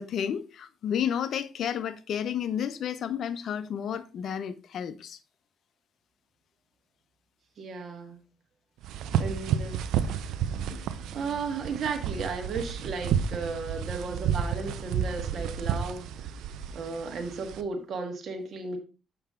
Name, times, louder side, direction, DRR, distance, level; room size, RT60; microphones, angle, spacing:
voice 1, 0.0-5.2 10.7-10.9, left 8 dB, 65° left, 0.7 m, -31 dB
voice 2, 7.6-8.2 9.2-10.1 11.1-16.4 16.7-18.8, right 4 dB, 60° right, 1.7 m, -35 dB
sound 1, 8.8-17.6, right 8 dB, 85° right, 0.5 m, -31 dB
7.1 x 5.7 x 3.6 m
cardioid pair, 90°, 0 cm